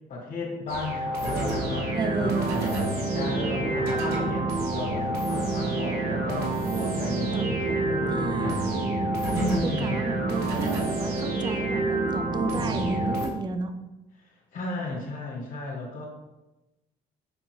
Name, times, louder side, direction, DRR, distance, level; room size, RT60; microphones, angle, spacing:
voice 1, 0.1-8.6 9.3-10.2 14.2-16.1, left 2 dB, 55° left, -1 dB, 1.2 m, -34 dB
sound 1, 0.7-13.3, right 2 dB, 75° right, 1.0 m, -27 dB
voice 2, 1.9-2.5 7.3-7.5 8.1-8.7 9.6-13.8, right 3 dB, 25° right, 8 dB, 0.4 m, -33 dB
5.2 x 2.4 x 3.0 m, 1.0 s
cardioid pair, 110°, 17 cm